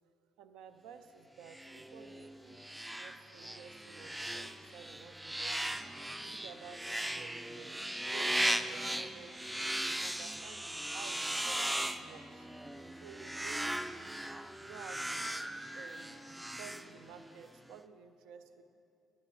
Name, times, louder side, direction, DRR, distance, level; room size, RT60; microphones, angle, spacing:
voice 1, 0.4-5.8 6.2-9.5 10.0-12.5 13.0-14.2 14.6-18.6, right 6 dB, 70° right, 10 dB, 0.5 m, -53 dB
sound 1, 1.5-17.4, right 1 dB, 10° right, 0.5 m, -38 dB
11.5 x 9.6 x 4.4 m, 2.6 s
hypercardioid pair, 45°, 0 cm